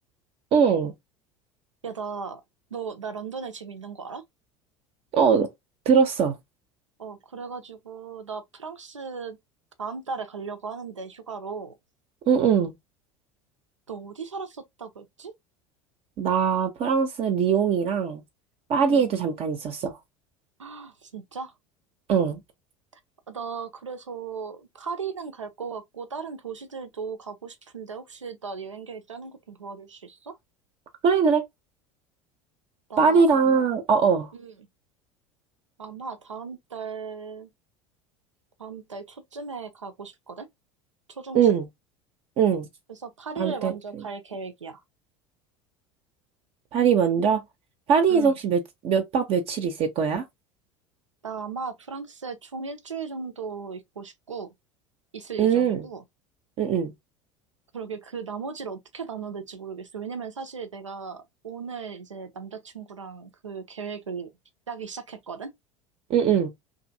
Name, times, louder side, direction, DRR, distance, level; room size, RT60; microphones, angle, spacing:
voice 1, 0.5-0.9 5.1-5.5 5.9-6.4 12.3-12.7 16.2-18.2 18.7-20.0 22.1-22.4 31.0-31.5 33.0-34.3 41.3-41.6 42.4-42.7 43.4-44.1 46.7-47.4 47.9-50.2 55.4-55.9 56.6-56.9 66.1-66.5, right 6 dB, 40° right, 0.6 m, -21 dB
voice 2, 1.8-2.4 2.7-4.2 7.0-9.4 9.8-11.7 13.9-15.3 18.8-19.1 20.6-21.5 23.3-30.3 32.9-33.7 34.3-34.5 35.8-37.5 38.6-40.5 41.1-41.5 42.9-44.8 48.1-48.3 51.2-54.5 55.1-56.0 57.7-64.3 64.7-65.5, right 5 dB, 85° right, 0.5 m, -37 dB
2.6 x 2.6 x 2.6 m
figure-of-eight pair, 70°, 16 cm